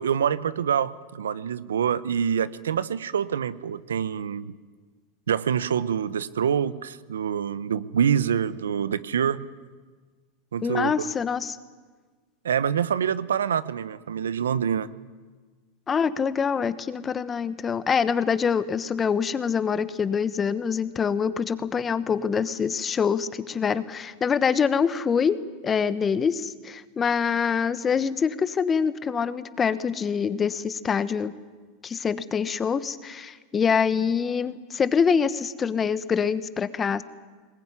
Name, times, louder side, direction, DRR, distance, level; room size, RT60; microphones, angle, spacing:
voice 1, 0.0-4.5 5.3-9.4 10.5-11.1 12.4-14.9, right 8 dB, 90° right, 17 dB, 0.8 m, -26 dB
voice 2, 10.6-11.6 15.9-31.3 31.8-37.0, left 6 dB, 25° left, 14 dB, 1.2 m, -25 dB
21.0 x 19.5 x 9.7 m, 1.4 s
hypercardioid pair, 105°, 0 cm